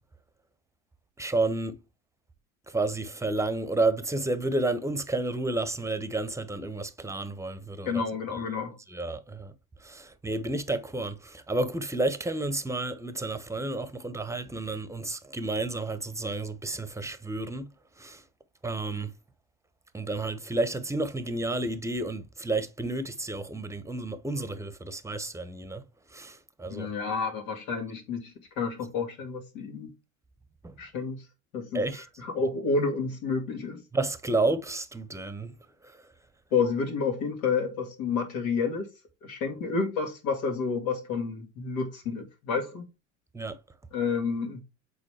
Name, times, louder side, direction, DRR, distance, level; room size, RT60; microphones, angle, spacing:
voice 1, 1.2-1.8 2.7-8.0 8.9-9.5 9.8-17.7 18.0-18.2 18.6-19.1 19.9-25.8 26.1-26.9 30.6-30.8 31.7-32.0 33.9-35.5 43.3-43.6, right 2 dB, 5° right, 0.9 m, -31 dB
voice 2, 7.9-8.8 26.7-29.9 30.8-31.2 31.5-33.8 36.5-38.9 39.2-42.9 43.9-44.6, left 5 dB, 75° left, 2.3 m, -30 dB
7.7 x 4.1 x 3.4 m
hypercardioid pair, 80°, 40 cm